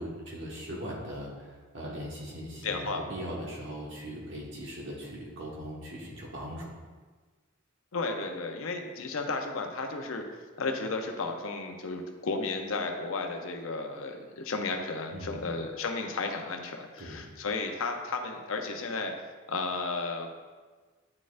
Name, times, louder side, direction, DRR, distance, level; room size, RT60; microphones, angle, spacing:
voice 1, 0.0-6.7 15.1-15.4 17.0-17.2, equal, 60° right, -3 dB, 1.5 m, -39 dB
voice 2, 2.6-3.0 7.9-10.2 10.6-19.1 19.5-20.3, left 3 dB, 75° left, 4 dB, 0.7 m, -33 dB
9.6 x 4.2 x 2.5 m, 1.4 s
head